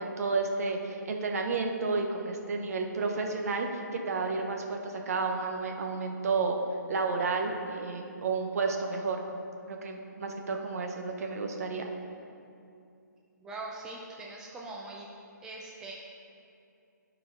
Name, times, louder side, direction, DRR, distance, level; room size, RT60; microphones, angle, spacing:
voice 1, 0.0-6.6 6.9-9.2 9.7-11.9, right 4 dB, 50° right, 3 dB, 0.9 m, -31 dB
voice 2, 13.4-15.1 15.4-15.9, right 2 dB, 5° right, -3 dB, 0.4 m, -42 dB
11.5 x 4.5 x 3.7 m, 2.5 s
figure-of-eight pair, 140°, 10 cm